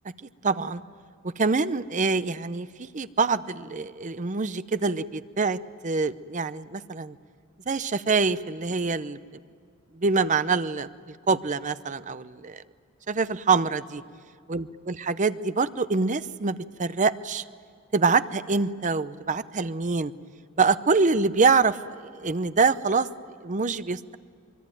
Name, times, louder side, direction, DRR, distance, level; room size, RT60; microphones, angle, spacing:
voice 1, 0.4-0.8 1.2-2.7 2.9-7.2 7.7-9.2 10.0-10.9 11.3-12.6 13.1-14.0 14.5-17.4 17.9-20.1 20.6-21.8 22.2-23.1 23.4-24.1, right 4 dB, 35° right, 13 dB, 0.7 m, -25 dB
24.0 x 24.0 x 9.1 m, 2.2 s
head